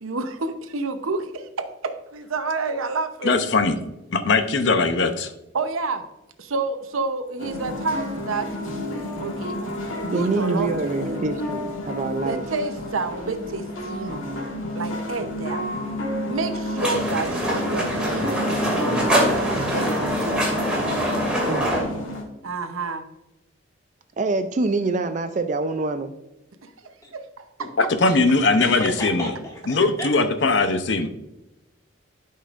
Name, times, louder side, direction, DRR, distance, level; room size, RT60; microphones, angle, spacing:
voice 1, 0.0-3.3 5.5-6.0 6.4-8.5 9.2-9.6 10.0-10.7 11.0-11.3 12.2-14.5 14.7-15.6 16.3-19.1 19.3-20.4 22.4-23.1 26.6-26.7 27.1-27.7, right 3 dB, 85° right, 8 dB, 0.8 m, -29 dB
voice 2, 3.2-3.8 4.1-5.3 27.8-29.3 29.7-31.1, left 3 dB, 55° left, 9 dB, 0.6 m, -20 dB
sound 1, 7.4-22.2, left 1 dB, 85° left, 2.1 m, -30 dB
voice 3, 10.0-12.4 21.5-21.9 24.2-26.1, right 3 dB, 35° right, 9 dB, 0.4 m, -25 dB
sound 2, 16.8-21.8, equal, 5° right, 2.3 m, -24 dB
voice 4, 28.6-30.2 30.4-30.6, left 1 dB, 15° left, -1 dB, 1.5 m, -34 dB
12.0 x 5.6 x 2.5 m, 0.93 s
head